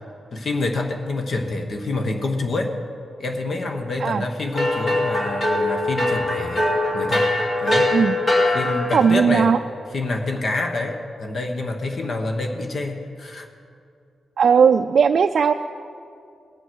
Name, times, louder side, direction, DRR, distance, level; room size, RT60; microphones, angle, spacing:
voice 1, 0.3-2.8 3.2-6.6 6.9-7.3 7.6-7.9 8.5-9.5 9.9-13.5, left 2 dB, 50° left, 4 dB, 1.1 m, -27 dB
sound 1, 4.5-9.2, left 1 dB, 35° left, 2.6 m, -22 dB
voice 2, 8.9-9.6 14.4-15.5, right 6 dB, 60° right, 7 dB, 0.3 m, -17 dB
19.0 x 7.1 x 6.3 m, 2.4 s
wide cardioid pair, 130°, 0 cm